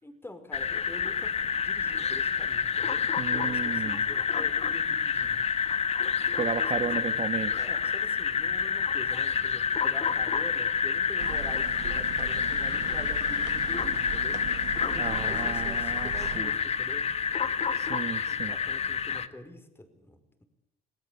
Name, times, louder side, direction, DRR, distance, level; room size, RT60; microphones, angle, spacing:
voice 1, 0.0-5.5 6.7-7.1 7.6-14.4 14.8-17.1 17.7-17.9 18.3-20.4, left 1 dB, 15° left, 8 dB, 5.2 m, -46 dB
sound 1, 0.5-19.3, left 6 dB, 40° left, 1.7 m, -28 dB
voice 2, 3.2-4.0 6.4-7.7 15.0-16.5 17.8-18.6, right 7 dB, 40° right, 12 dB, 1.5 m, -34 dB
sound 2, 11.2-16.4, right 11 dB, 85° right, 2.2 m, -40 dB
30.0 x 20.0 x 8.4 m, 0.82 s
cardioid pair, 110°, 17 cm